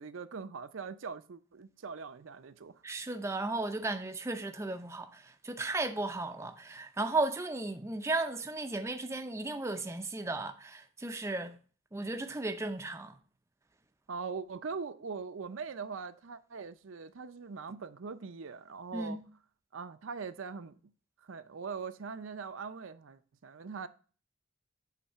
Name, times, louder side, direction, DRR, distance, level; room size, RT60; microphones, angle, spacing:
voice 1, 0.0-2.7 14.1-19.2 19.7-20.8 21.3-23.9, right 5 dB, 65° right, 0.5 m, -41 dB
voice 2, 2.8-11.5 11.9-13.2 18.9-19.2, right 2 dB, 15° right, 0.5 m, -35 dB
8.4 x 3.3 x 5.5 m
head